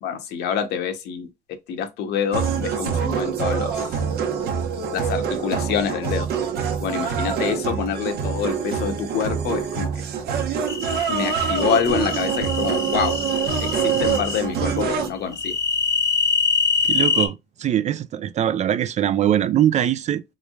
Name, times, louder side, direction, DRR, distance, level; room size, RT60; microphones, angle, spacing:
voice 1, 0.0-1.3 1.7-4.0 4.9-6.3 6.8-10.0 11.1-13.2 13.6-15.5, left 7 dB, 75° left, 0.9 m, -26 dB
sound 1, 2.3-15.1, right 7 dB, 75° right, 0.9 m, -25 dB
sound 2, 10.7-14.4 15.3-17.3, left 5 dB, 20° left, 0.6 m, -24 dB
voice 2, 16.9-20.2, right 10 dB, 45° right, 0.4 m, -22 dB
3.4 x 3.2 x 2.3 m
cardioid pair, 110°, 17 cm